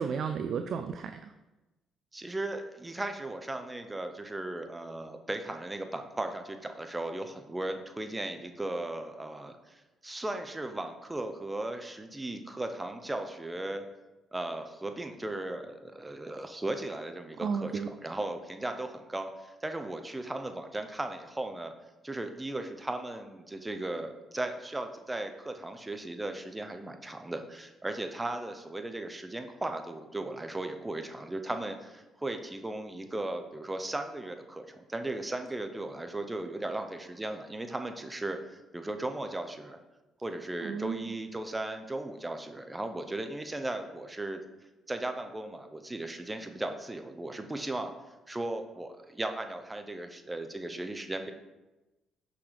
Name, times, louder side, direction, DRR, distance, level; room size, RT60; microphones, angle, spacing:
voice 1, 0.0-1.3 17.4-17.9 40.6-41.0, right 6 dB, 60° right, 8 dB, 0.3 m, -33 dB
voice 2, 2.1-13.8 14.3-21.7 22.0-39.8 40.2-44.4 44.9-47.9 48.3-51.3, right 2 dB, 15° right, 7 dB, 0.8 m, -37 dB
6.1 x 5.8 x 3.4 m, 1.1 s
supercardioid pair, 60°, 0 cm